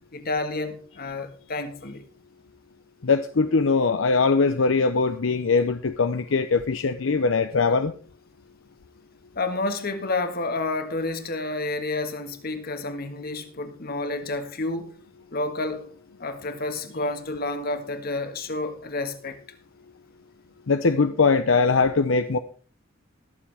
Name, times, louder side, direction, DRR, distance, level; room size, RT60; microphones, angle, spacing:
voice 1, 0.1-2.0 9.3-15.0 15.3-15.9 16.2-19.4, left 2 dB, 50° left, 1.7 m, -30 dB
voice 2, 3.0-7.9 20.7-22.4, left 4 dB, 70° left, 0.7 m, -21 dB
21.0 x 7.3 x 3.4 m
head